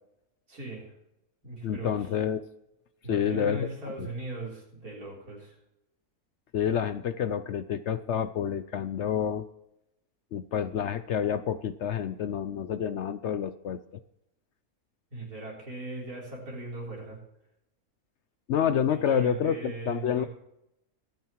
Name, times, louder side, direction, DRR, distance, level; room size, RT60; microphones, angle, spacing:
voice 1, 0.5-0.9 1.4-1.9 3.0-5.6 15.1-17.2 19.1-20.3, right 2 dB, 80° right, -2 dB, 4.2 m, -39 dB
voice 2, 1.6-2.4 3.1-3.7 4.0-4.1 6.5-9.5 10.3-13.8 18.5-20.2, left 8 dB, 65° left, 12 dB, 0.8 m, -28 dB
22.5 x 9.1 x 3.0 m, 0.84 s
omnidirectional pair, 1.5 m